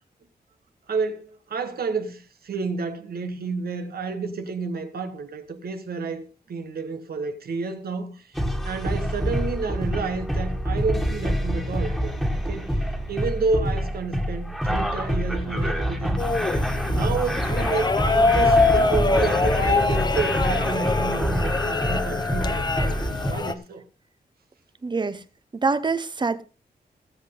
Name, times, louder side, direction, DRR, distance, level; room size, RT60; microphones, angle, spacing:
voice 1, 0.9-8.3 8.6-12.8 13.1-16.2 16.9-23.0 23.3-23.8, right 4 dB, 70° right, 1.6 m, -30 dB
sound 1, 8.4-23.3, equal, ahead, 1.9 m, -26 dB
sound 2, 16.2-23.5, left 3 dB, 25° left, 0.9 m, -24 dB
voice 2, 24.8-25.2 25.5-26.4, right 4 dB, 30° right, 0.9 m, -25 dB
18.5 x 8.1 x 3.9 m
wide cardioid pair, 155°, 16 cm